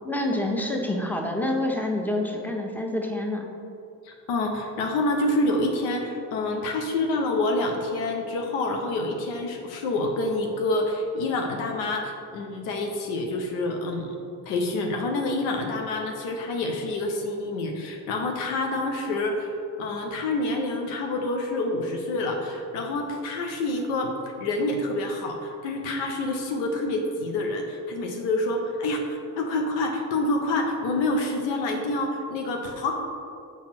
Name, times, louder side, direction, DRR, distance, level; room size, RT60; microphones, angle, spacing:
voice 1, 0.0-3.5, left 1 dB, 5° left, 1 dB, 1.1 m, -27 dB
voice 2, 4.0-14.1 14.4-24.1 24.4-32.9, left 2 dB, 80° left, 2 dB, 0.8 m, -27 dB
7.2 x 4.3 x 4.2 m, 2.5 s
hypercardioid pair, 40°, 45 cm